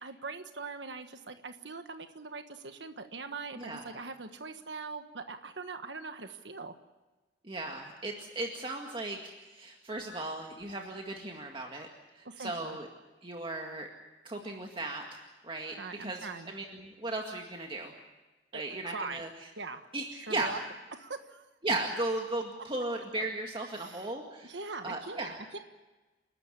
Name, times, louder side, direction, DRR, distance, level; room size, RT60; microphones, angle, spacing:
voice 1, 0.0-6.7 12.2-12.8 15.7-16.5 18.5-19.2 19.6-20.6 21.0-21.5 23.8-24.1 24.4-25.6, right 4 dB, 80° right, 7 dB, 1.4 m, -42 dB
voice 2, 3.6-4.0 7.4-11.9 12.1-12.9 13.2-13.9 14.2-18.0 18.5-19.3 19.9-20.6 21.6-24.6 24.8-25.4, right 2 dB, 30° right, 1 dB, 2.1 m, -36 dB
29.5 x 13.0 x 9.8 m, 1.2 s
head